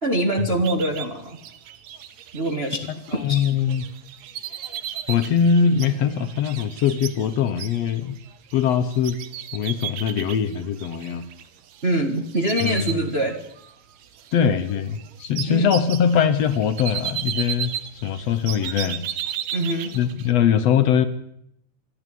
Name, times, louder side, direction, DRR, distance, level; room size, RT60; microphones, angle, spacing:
voice 1, 0.0-1.4 2.3-3.4 11.8-13.4 15.5-15.7 19.5-20.0, right 1 dB, 25° right, 2 dB, 1.5 m, -24 dB
sound 1, 0.6-12.0 12.3-13.7 14.0-20.3, right 10 dB, 70° right, 2.3 m, -35 dB
voice 2, 3.2-3.9 5.1-8.2 8.5-9.2 9.5-11.2 12.6-12.9 14.3-17.7 18.0-19.0 19.9-21.1, left 7 dB, 65° left, 10 dB, 2.0 m, -21 dB
26.5 x 11.0 x 9.2 m, 0.74 s
omnidirectional pair, 3.4 m